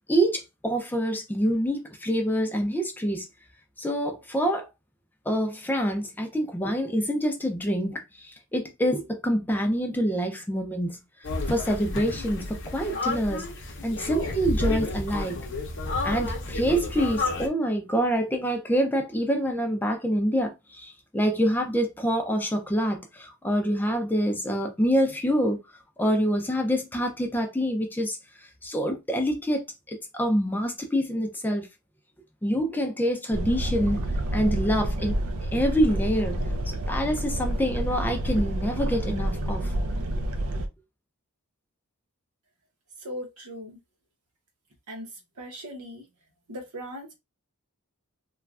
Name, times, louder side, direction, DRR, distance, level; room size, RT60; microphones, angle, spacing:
voice 1, 0.1-3.3 3.8-4.7 5.3-11.0 11.5-13.5 13.8-15.4 16.0-25.6 26.0-28.2 28.6-31.7 32.4-34.0 34.3-36.4 36.7-39.7, equal, 10° left, 0.4 m, -26 dB
sound 1, 11.2-17.5, left 2 dB, 55° left, 0.6 m, -30 dB
sound 2, 33.3-40.7, right 1 dB, 70° right, 0.4 m, -28 dB
voice 2, 43.0-43.8 44.9-45.1 45.4-46.0 46.5-47.1, equal, 90° right, 0.9 m, -38 dB
3.0 x 2.3 x 2.3 m
head